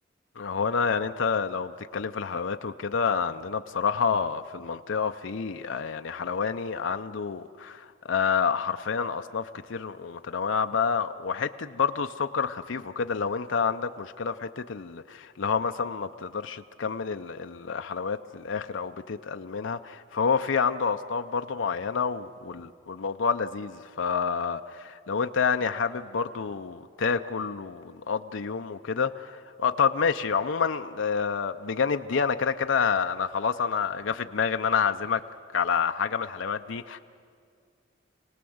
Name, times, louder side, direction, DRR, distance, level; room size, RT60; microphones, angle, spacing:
voice 1, 0.4-35.2 35.5-37.0, left 6 dB, 70° left, 7 dB, 0.6 m, -28 dB
27.0 x 18.5 x 7.9 m, 2.2 s
head